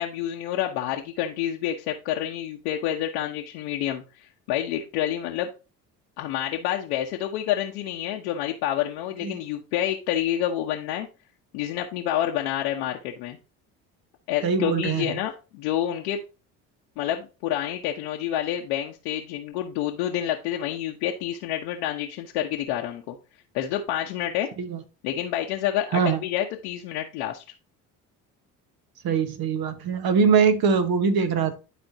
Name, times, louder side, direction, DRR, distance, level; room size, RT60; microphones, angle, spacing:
voice 1, 0.0-5.5 6.2-11.1 11.5-13.4 14.3-16.2 17.0-23.2 23.5-24.5 25.0-27.4, left 11 dB, 75° left, 1.0 m, -28 dB
voice 2, 14.4-15.1 24.6-24.8 25.9-26.2 29.0-31.5, right 6 dB, 55° right, 1.4 m, -22 dB
11.0 x 4.3 x 2.8 m
hypercardioid pair, 55°, 44 cm